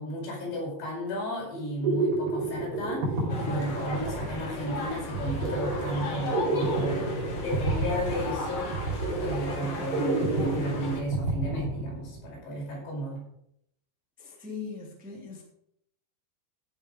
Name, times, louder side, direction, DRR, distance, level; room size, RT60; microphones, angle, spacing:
voice 1, 0.0-7.1 7.4-8.7 9.2-13.2, equal, 85° left, -3 dB, 7.4 m, -34 dB
sound 1, 1.5-12.3, right 2 dB, 70° right, 5.3 m, -30 dB
sound 2, 3.3-11.0, left 3 dB, 45° left, 2.8 m, -36 dB
voice 2, 14.2-15.4, left 5 dB, 5° right, -2 dB, 2.0 m, -40 dB
14.5 x 7.2 x 4.8 m, 0.74 s
omnidirectional pair, 4.8 m